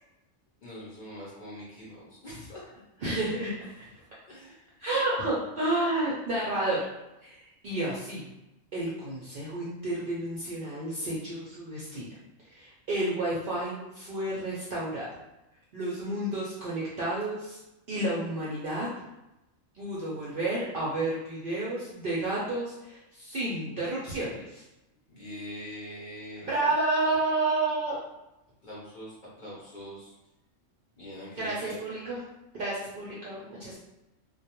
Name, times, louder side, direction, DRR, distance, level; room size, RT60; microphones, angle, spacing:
voice 1, 0.6-2.6 3.8-4.8 25.1-26.7 28.6-30.1 31.0-31.8, equal, 50° left, -7 dB, 0.6 m, -43 dB
voice 2, 3.0-3.8 4.8-6.8 7.2-7.4 7.6-8.3 8.7-12.1 12.5-15.1 15.7-17.6 17.9-18.9 19.7-24.6 26.4-28.0 31.4-32.2 32.5-33.8, right 2 dB, 60° right, -7 dB, 0.5 m, -31 dB
2.2 x 2.2 x 2.8 m, 0.94 s
omnidirectional pair, 1.4 m